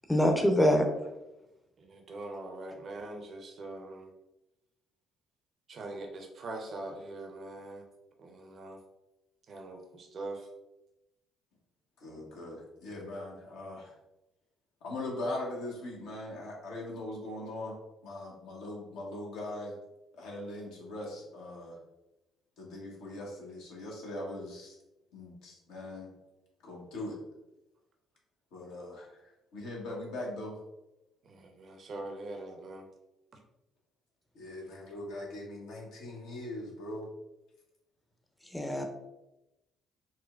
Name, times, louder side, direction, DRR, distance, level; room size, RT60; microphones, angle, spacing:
voice 1, 0.1-0.9 38.5-38.8, equal, 10° left, 4 dB, 0.6 m, -24 dB
voice 2, 1.8-4.1 5.7-7.8 8.2-8.8 9.5-10.5 31.2-32.8, right 2 dB, 50° right, 2 dB, 0.6 m, -42 dB
voice 3, 12.0-13.9 14.8-19.7 20.2-21.8 22.6-24.8 25.1-26.1 26.6-27.2 28.5-29.2 29.5-30.6 34.3-37.1, left 1 dB, 70° left, -2 dB, 0.9 m, -40 dB
4.1 x 2.2 x 2.3 m, 0.94 s
hypercardioid pair, 50°, 0 cm